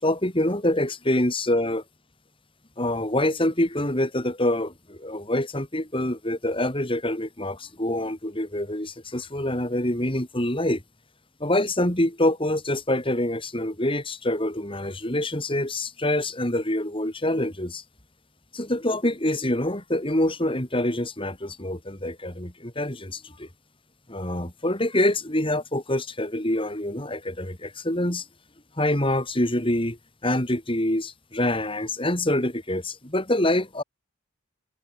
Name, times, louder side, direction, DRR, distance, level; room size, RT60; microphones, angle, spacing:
voice 1, 0.0-1.8 2.8-10.8 11.4-17.8 18.5-23.5 24.1-28.2 28.8-30.0 30.2-33.8, left 1 dB, 25° left, 5.5 m, -26 dB
head